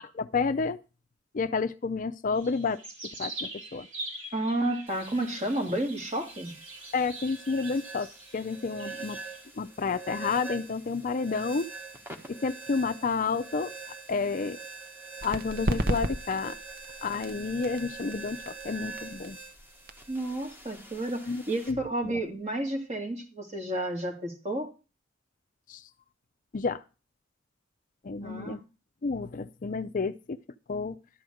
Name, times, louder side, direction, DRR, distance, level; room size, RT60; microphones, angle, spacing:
voice 1, 0.1-0.8 1.3-2.8 3.2-3.9 6.9-8.1 8.3-9.2 9.6-11.7 12.3-13.7 14.1-14.6 15.2-16.6 17.0-19.4 21.3-21.4 21.7-21.8 22.0-22.1 25.7-25.8 26.5-26.8 28.0-28.6 29.0-30.4 30.7-31.0, left 4 dB, 45° left, 11 dB, 0.5 m, -30 dB
sound 1, 2.3-9.5, right 2 dB, 75° right, 4.1 m, -43 dB
voice 2, 4.3-6.5 20.1-24.7 28.2-28.6, right 1 dB, 35° right, 3 dB, 2.3 m, -31 dB
sound 2, 4.9-21.7, right 4 dB, 10° right, 1.4 m, -45 dB
sound 3, 15.2-22.5, right 1 dB, 55° right, 0.9 m, -36 dB
12.5 x 5.0 x 7.7 m, 0.32 s
head